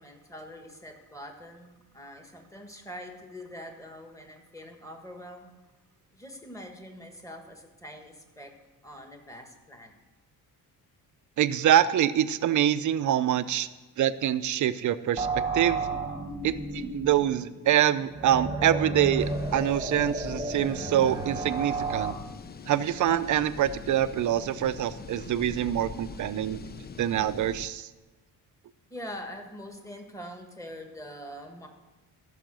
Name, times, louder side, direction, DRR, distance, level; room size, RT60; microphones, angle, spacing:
voice 1, 0.0-5.5 6.1-8.6 8.8-10.0 16.3-16.6 28.9-31.7, equal, 10° left, 4 dB, 1.6 m, -44 dB
voice 2, 11.4-13.7 14.0-15.9 16.4-22.1 22.7-26.7 27.0-27.9, right 11 dB, 55° right, 13 dB, 0.6 m, -25 dB
sound 1, 15.2-22.1, right 3 dB, 10° right, 1.2 m, -32 dB
sound 2, 19.2-27.7, left 5 dB, 25° left, 0.5 m, -43 dB
14.5 x 5.7 x 6.3 m, 1.2 s
cardioid pair, 120°, 37 cm